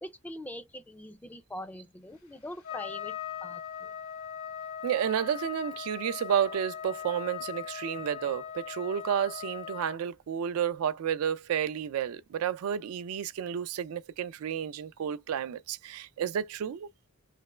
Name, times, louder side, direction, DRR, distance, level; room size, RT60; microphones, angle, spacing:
voice 1, 0.0-3.9, left 1 dB, 5° left, 0.3 m, -43 dB
Trumpet, 2.6-10.0, left 9 dB, 70° left, 1.9 m, -40 dB
voice 2, 4.8-16.9, right 9 dB, 75° right, 0.3 m, -31 dB
3.3 x 2.9 x 3.2 m
head